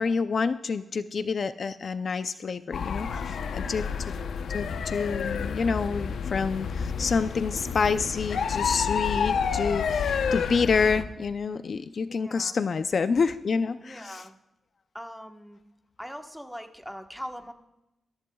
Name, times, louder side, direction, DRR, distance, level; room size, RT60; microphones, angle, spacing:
voice 1, 0.0-4.1 4.5-14.2, left 5 dB, 55° left, 11 dB, 0.5 m, -28 dB
sound 1, 2.7-11.0, left 6 dB, 85° left, 0.8 m, -29 dB
voice 2, 12.1-12.5 13.8-14.4 14.9-15.6 16.0-17.5, equal, ahead, 5 dB, 1.2 m, -41 dB
22.0 x 14.0 x 2.3 m, 0.91 s
cardioid pair, 100°, 0 cm